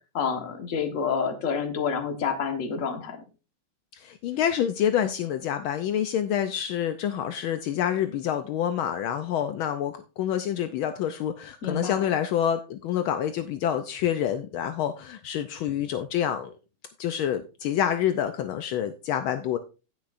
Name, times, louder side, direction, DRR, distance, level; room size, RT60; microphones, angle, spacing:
voice 1, 0.1-3.2 11.6-12.1, left 6 dB, 40° left, 6 dB, 1.5 m, -28 dB
voice 2, 4.0-16.5 17.0-19.6, left 10 dB, 75° left, 9 dB, 1.4 m, -27 dB
17.0 x 6.1 x 2.5 m, 0.31 s
omnidirectional pair, 2.4 m